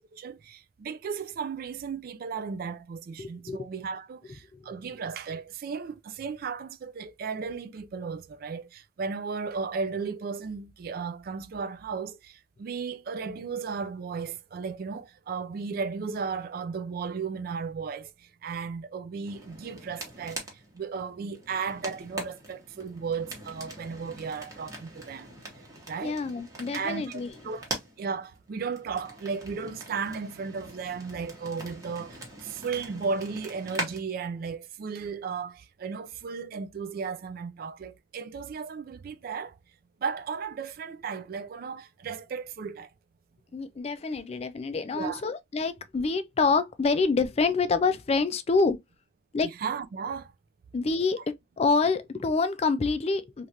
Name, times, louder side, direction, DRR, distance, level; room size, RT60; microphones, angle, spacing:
voice 1, 0.1-25.3 25.9-26.2 26.7-39.6 40.0-42.9 44.9-45.2 49.4-50.3, right 5 dB, 50° right, 0.3 m, -35 dB
voice 2, 3.2-3.7 4.5-4.6 26.0-27.3 43.5-48.8 49.3-49.5 50.7-53.5, left 4 dB, 35° left, 0.4 m, -27 dB
sound 1, 19.2-34.0, right 1 dB, 20° right, 1.0 m, -42 dB
3.2 x 2.4 x 2.7 m
head